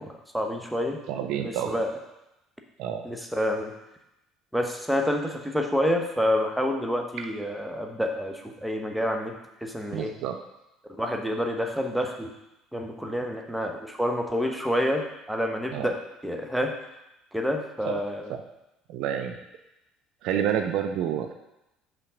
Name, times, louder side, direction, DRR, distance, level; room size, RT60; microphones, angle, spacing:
voice 1, 0.0-1.0 1.3-1.9 3.0-3.7 4.5-10.1 11.0-12.3 12.7-16.0 16.2-16.7 17.3-18.3, equal, 5° right, 2 dB, 0.9 m, -28 dB
voice 2, 1.1-1.7 2.8-3.0 9.9-10.4 15.7-15.9 17.9-18.0 18.3-18.4 18.9-19.4 20.2-21.3, right 9 dB, 55° right, 6 dB, 0.4 m, -29 dB
5.6 x 3.8 x 5.6 m, 0.91 s
figure-of-eight pair, 55°, 0 cm